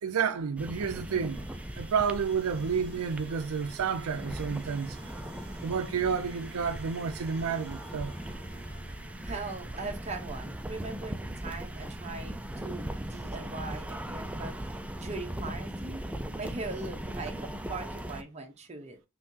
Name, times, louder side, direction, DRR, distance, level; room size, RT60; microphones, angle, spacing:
voice 1, 0.0-1.5 1.8-5.0 5.6-8.1, right 6 dB, 85° right, 0.4 m, -30 dB
sound 1, 0.6-18.2, right 1 dB, 5° right, 0.3 m, -39 dB
sound 2, 0.9-12.0, right 1 dB, 50° right, 1.6 m, -53 dB
voice 2, 9.2-16.0 16.3-19.0, right 3 dB, 30° right, 0.9 m, -40 dB
5.6 x 2.7 x 2.7 m
head